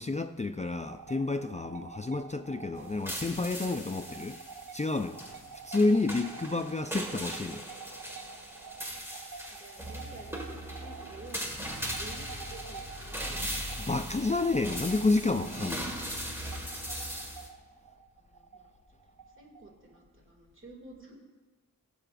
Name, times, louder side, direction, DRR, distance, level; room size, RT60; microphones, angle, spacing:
voice 1, 0.0-4.4 4.7-5.2 5.6-7.6 13.9-16.0, left 3 dB, 20° left, 8 dB, 0.4 m, -29 dB
sound 1, 0.6-20.0, right 5 dB, 85° right, 0.9 m, -48 dB
sound 2, 2.8-17.5, equal, 5° right, 1.6 m, -39 dB
voice 2, 9.5-13.6 18.2-21.2, right 2 dB, 35° right, 0 dB, 2.2 m, -52 dB
22.5 x 7.6 x 2.5 m, 1.3 s
wide cardioid pair, 100°, 34 cm